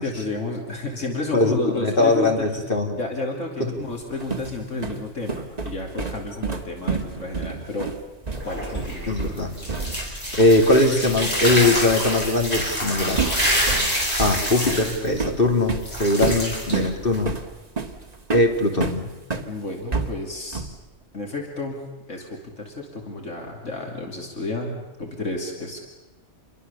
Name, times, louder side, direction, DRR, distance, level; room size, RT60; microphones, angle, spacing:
voice 1, 0.0-2.5 3.0-7.9 8.4-9.1 19.4-20.6 21.1-21.8 22.1-25.8, left 2 dB, 80° left, 1 dB, 3.2 m, -31 dB
voice 2, 1.3-3.0 3.6-3.8 9.0-9.5 10.3-13.2 14.2-17.4 18.3-19.1, left 2 dB, 45° left, 2 dB, 3.1 m, -21 dB
sound 1, 3.9-10.2 10.4-10.6 12.6-12.8 13.2-19.5 19.9-20.8, right 4 dB, 35° right, 1.7 m, -29 dB
sound 2, 8.2-17.4, equal, 30° left, 6.5 m, -27 dB
28.0 x 22.5 x 7.0 m, 1.1 s
omnidirectional pair, 1.3 m